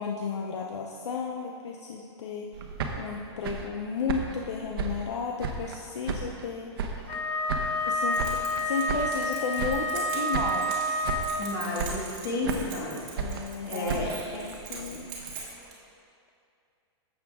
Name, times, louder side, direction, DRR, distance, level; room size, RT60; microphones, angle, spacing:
voice 1, 0.0-2.6 3.0-7.0 7.9-11.1 13.2-15.1, left 5 dB, 80° left, 1 dB, 0.7 m, -34 dB
sound 1, 2.5-5.8 6.1-7.2 7.5-9.3 9.6-10.1 10.3-10.8 11.0-11.5 11.8-12.8 13.2-15.4, right 5 dB, 55° right, 0.9 m, -35 dB
Wind instrument woodwind instrument, 7.0-11.6, left 1 dB, 15° left, 0.8 m, -29 dB
Keys jangling, 7.8-15.7, right 4 dB, 25° right, 1.5 m, -43 dB
voice 2, 11.4-13.1 13.3-14.1, left 2 dB, 55° left, -3 dB, 2.0 m, -32 dB
11.0 x 7.4 x 3.6 m, 2.5 s
supercardioid pair, 175°, 14 cm